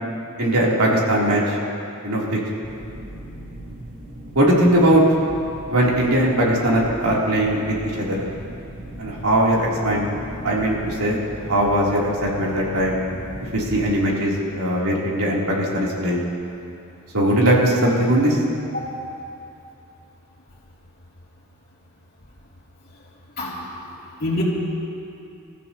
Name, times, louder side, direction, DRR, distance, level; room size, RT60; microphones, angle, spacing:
voice 1, 0.4-1.6 2.0-2.4 4.4-5.0 5.7-8.2 9.0-10.1 10.4-11.2 11.5-13.0 13.5-16.3 17.1-18.4, right 1 dB, 85° right, -5 dB, 3.5 m, -20 dB
sound 1, 2.6-13.9, right 1 dB, 55° right, 3.4 m, -38 dB
voice 2, 23.4-23.7 24.2-24.4, left 2 dB, 45° left, -5 dB, 3.0 m, -26 dB
28.0 x 14.5 x 3.0 m, 2.6 s
head